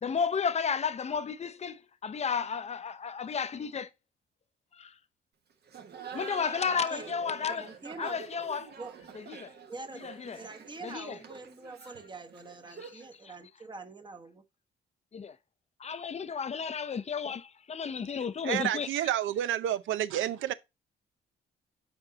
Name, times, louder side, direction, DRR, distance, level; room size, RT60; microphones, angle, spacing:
voice 1, 0.0-3.9 4.8-4.9 6.1-7.7 8.0-8.7 9.4-9.5 10.0-10.4 10.8-11.1 15.1-15.3 15.8-18.9, left 6 dB, 35° left, 0.6 m, -32 dB
Laughter, 5.7-13.1, right 6 dB, 55° right, 1.2 m, -46 dB
voice 2, 6.6-7.0 7.5-8.2 8.8-8.9 9.7-14.4, right 3 dB, 25° right, 1.0 m, -45 dB
voice 3, 18.4-20.5, right 12 dB, 80° right, 0.6 m, -29 dB
6.3 x 4.5 x 3.9 m
cardioid pair, 90°, 20 cm